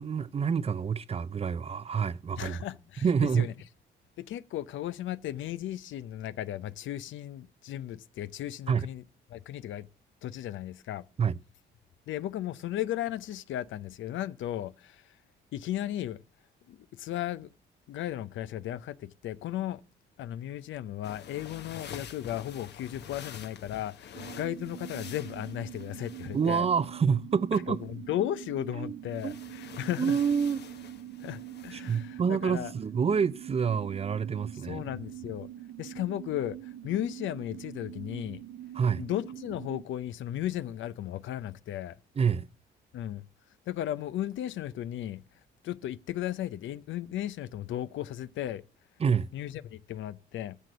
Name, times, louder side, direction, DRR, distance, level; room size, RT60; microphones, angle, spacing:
voice 1, 0.0-2.6 3.0-3.5 8.7-8.9 11.2-11.3 26.3-27.8 28.8-29.4 30.0-30.6 31.7-34.8 38.7-39.0 42.2-42.5 49.0-49.3, right 6 dB, 30° right, 0.5 m, -27 dB
voice 2, 2.4-3.5 4.2-9.0 9.3-9.9 10.2-11.0 12.1-15.1 15.5-16.2 16.7-17.5 17.9-19.8 20.2-26.7 27.5-30.2 31.2-32.7 34.6-35.5 35.8-38.4 39.0-42.0 42.9-43.2 43.7-45.2 45.6-48.6 49.3-50.6, left 12 dB, 75° left, 0.6 m, -35 dB
sound 1, 21.0-27.0 29.1-32.1, left 8 dB, 60° left, 1.0 m, -47 dB
sound 2, 24.1-39.8, right 13 dB, 75° right, 0.6 m, -44 dB
9.9 x 6.8 x 7.7 m
cardioid pair, 90°, 20 cm